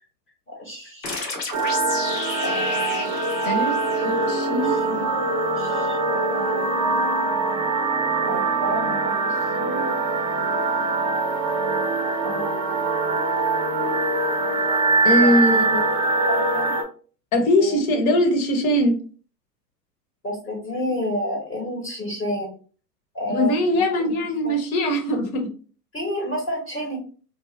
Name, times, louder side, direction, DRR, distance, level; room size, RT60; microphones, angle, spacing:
voice 1, 0.5-1.3 2.4-3.1 4.6-5.3 5.6-6.0 6.3-6.7 8.2-9.9 12.2-12.8 15.2-15.6 16.3-16.8 17.6-17.8 20.2-22.5 23.1-23.8 24.4-24.5 25.9-27.0, equal, 20° left, -3 dB, 1.0 m, -30 dB
sound 1, 1.0-4.5, left 3 dB, 85° left, 1.2 m, -32 dB
sound 2, 1.5-16.8, right 3 dB, 30° right, 0.5 m, -23 dB
voice 2, 3.4-3.8 4.0-4.7 15.0-16.0 17.3-19.0 23.3-25.5, left 1 dB, 55° left, 4 dB, 1.1 m, -21 dB
2.9 x 2.0 x 3.1 m, 0.40 s
hypercardioid pair, 115°, 49 cm